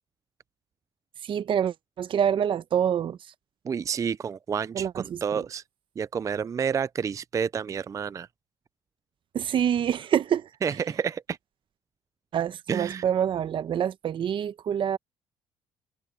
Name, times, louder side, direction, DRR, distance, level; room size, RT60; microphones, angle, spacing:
voice 1, 1.3-3.2 4.7-5.2 9.3-10.5 12.3-15.0, right 9 dB, 55° right, 1.0 m, -26 dB
voice 2, 3.6-5.6 6.0-8.3 10.6-11.4 12.7-13.0, right 7 dB, 30° right, 0.4 m, -29 dB
supercardioid pair, 85°, 11 cm